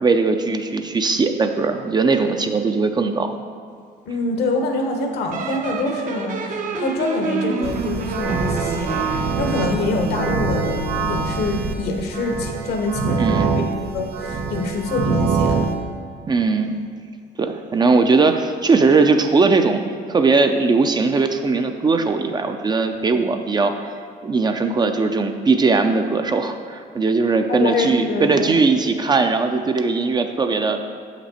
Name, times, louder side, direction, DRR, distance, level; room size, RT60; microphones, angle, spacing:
voice 1, 0.0-3.3 13.2-13.5 16.3-16.8 17.4-19.8 20.1-23.9 24.2-30.8, right 4 dB, 25° right, 6 dB, 0.5 m, -19 dB
voice 2, 4.1-9.1 9.4-15.8 23.1-23.2 27.5-28.5, left 2 dB, 70° left, 3 dB, 1.1 m, -25 dB
sound 1, 5.3-11.3, right 3 dB, 50° right, 0.7 m, -28 dB
sound 2, 7.6-15.7, right 5 dB, 90° right, 0.8 m, -24 dB
7.0 x 5.9 x 4.2 m, 2.2 s
cardioid pair, 110°, 17 cm